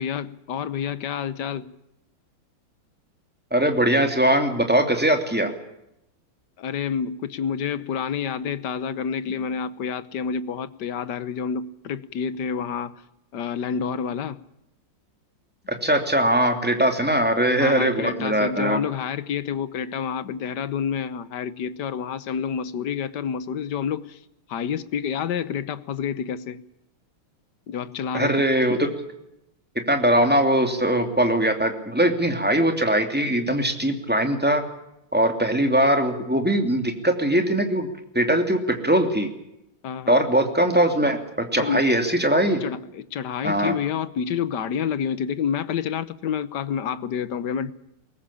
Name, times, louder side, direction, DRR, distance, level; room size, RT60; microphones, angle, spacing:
voice 1, 0.0-1.7 6.6-13.0 13.3-14.4 17.0-17.1 17.5-24.2 24.5-26.6 27.7-28.5 39.8-40.2 41.6-41.9 42.6-47.7, left 7 dB, 60° left, 1.5 m, -28 dB
voice 2, 3.5-5.5 15.7-18.8 28.1-28.9 29.9-34.6 35.1-37.9 38.1-39.3 40.1-41.2 41.5-42.6 43.4-43.8, right 1 dB, 5° right, 2.7 m, -21 dB
22.5 x 19.0 x 8.5 m
omnidirectional pair, 2.3 m